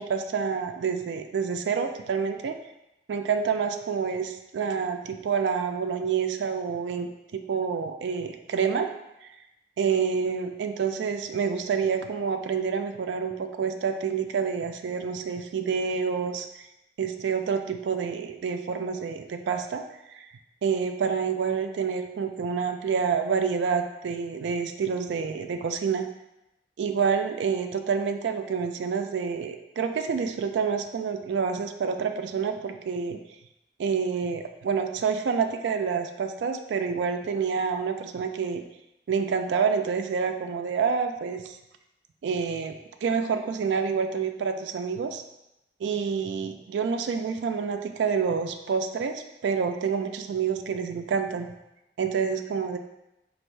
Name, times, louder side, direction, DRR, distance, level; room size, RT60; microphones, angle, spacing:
voice 1, 0.0-2.5 3.1-8.9 9.2-9.3 9.8-16.5 17.0-19.8 20.1-20.3 20.6-26.0 26.8-33.2 33.8-38.6 39.1-41.6 42.2-42.7 43.0-45.2 45.8-51.5 52.0-52.8, right 6 dB, 85° right, 6 dB, 0.3 m, -28 dB
4.3 x 2.6 x 3.1 m, 0.89 s
head